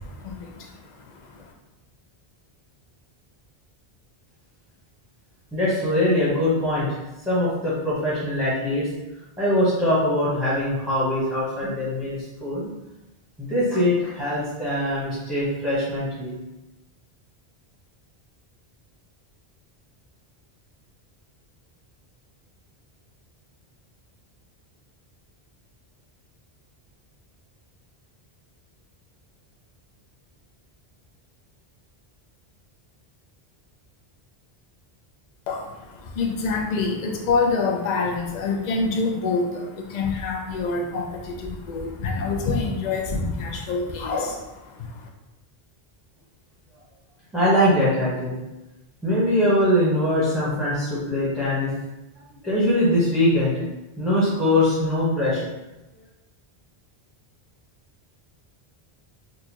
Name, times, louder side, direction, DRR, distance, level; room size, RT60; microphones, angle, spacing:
voice 1, 0.0-1.5 35.5-45.1, left 4 dB, 50° left, 1 dB, 0.6 m, -27 dB
voice 2, 5.5-6.9 7.3-8.9 9.4-12.7 13.4-16.3 47.3-48.3 49.0-51.7 52.4-53.7 54.0-55.4, left 1 dB, ahead, -9 dB, 0.9 m, -22 dB
4.3 x 2.3 x 2.8 m, 0.98 s
omnidirectional pair, 1.0 m